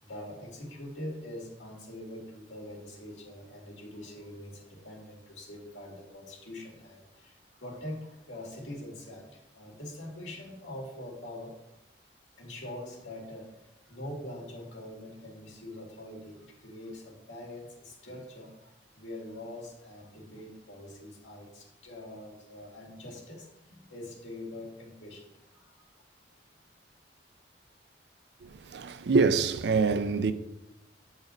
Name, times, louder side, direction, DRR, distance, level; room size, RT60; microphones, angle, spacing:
voice 1, 0.0-11.5 12.4-25.8, left 1 dB, 85° left, 1.9 m, -44 dB
voice 2, 28.4-30.3, right 4 dB, 65° right, 0.4 m, -25 dB
8.0 x 4.1 x 4.1 m
head